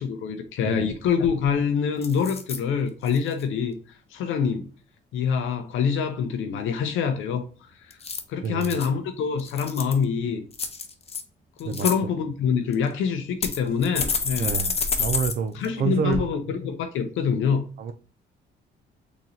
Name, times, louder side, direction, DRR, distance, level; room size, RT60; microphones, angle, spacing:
voice 1, 0.0-4.7 5.1-8.0 8.3-10.4 11.6-14.6 15.5-17.6, left 6 dB, 80° left, 0.5 m, -26 dB
sound 1, 0.9-1.0 1.2-1.6 2.0-2.6 3.1-3.4 7.9-8.9 9.4-10.0 10.5-11.2 11.6-12.0 12.7-12.8 13.4-15.3 15.6-15.7 16.1-16.2, left 4 dB, 30° left, 0.6 m, -29 dB
voice 2, 8.4-8.8 11.7-11.9 14.4-16.3 17.8-17.9, right 7 dB, 50° right, 0.4 m, -28 dB
3.8 x 3.0 x 2.7 m
cardioid pair, 90°, 20 cm